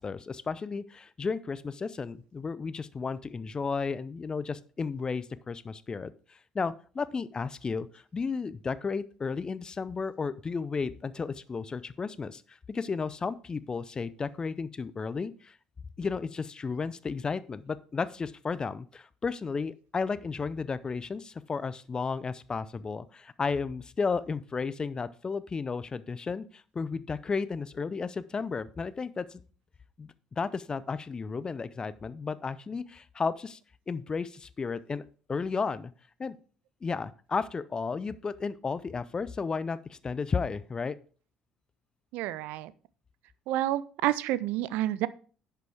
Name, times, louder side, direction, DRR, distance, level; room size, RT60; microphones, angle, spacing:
voice 1, 0.0-15.6 16.0-29.4 30.0-33.6 33.9-35.0 35.3-35.9 36.2-36.4 36.8-41.0, left 5 dB, 25° left, 17 dB, 0.5 m, -33 dB
voice 2, 42.1-42.7 43.5-45.1, right 14 dB, 60° right, 18 dB, 0.4 m, -29 dB
10.5 x 6.8 x 3.4 m, 0.40 s
figure-of-eight pair, 55°, 3 cm